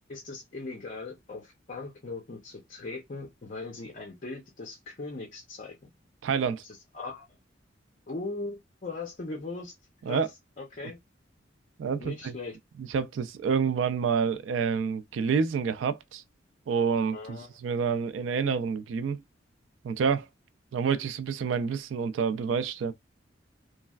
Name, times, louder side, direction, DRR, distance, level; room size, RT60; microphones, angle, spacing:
voice 1, 0.1-5.8 6.6-7.2 8.1-9.7 10.1-10.3 10.6-11.0 12.0-12.6 17.1-17.5, left 3 dB, 45° left, 0.6 m, -39 dB
voice 2, 6.2-6.6 10.1-10.3 11.8-12.3 12.9-16.2 16.7-19.2 19.8-20.3 20.7-22.9, right 6 dB, 80° right, 0.3 m, -28 dB
3.1 x 2.3 x 2.3 m
head